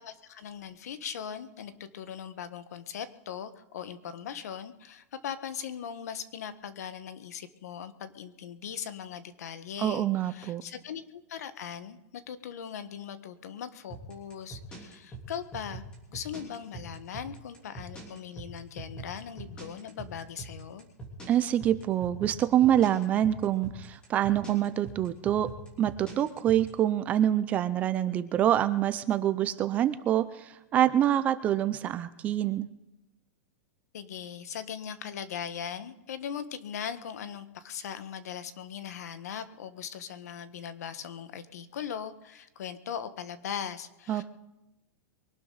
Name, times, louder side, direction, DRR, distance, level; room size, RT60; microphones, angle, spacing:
voice 1, 0.0-11.0 11.3-20.9 33.9-44.2, left 8 dB, 75° left, 12 dB, 1.4 m, -39 dB
voice 2, 9.8-10.6 21.3-25.5 25.8-32.7 44.1-44.2, right 11 dB, 15° right, 14 dB, 0.5 m, -26 dB
sound 1, 13.9-26.7, right 4 dB, 10° left, 3.2 m, -43 dB
23.5 x 12.0 x 4.0 m, 0.96 s
supercardioid pair, 175°, 9 cm